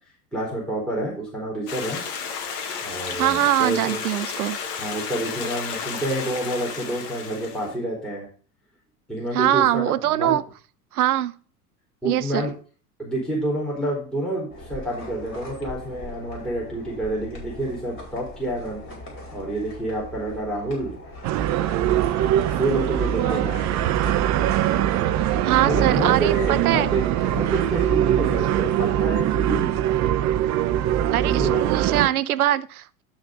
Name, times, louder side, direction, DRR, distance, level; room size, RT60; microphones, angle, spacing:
voice 1, 0.3-2.0 2.8-4.0 4.8-8.3 9.1-9.9 10.2-10.4 12.0-12.5 13.0-18.8 19.3-20.9 22.6-23.8 25.6-27.0 27.3-29.8 31.2-31.8, right 1 dB, ahead, 4.3 m, -28 dB
Stream, 1.7-7.7, left 6 dB, 50° left, 1.8 m, -32 dB
voice 2, 3.2-4.6 9.3-10.4 10.9-11.3 12.0-12.5 25.4-26.9 31.1-33.0, right 13 dB, 70° right, 0.7 m, -22 dB
sound 1, 14.5-28.6, left 1 dB, 30° left, 4.9 m, -40 dB
sound 2, 21.2-32.1, right 11 dB, 35° right, 0.8 m, -22 dB
12.0 x 4.2 x 5.1 m
figure-of-eight pair, 85°, 46 cm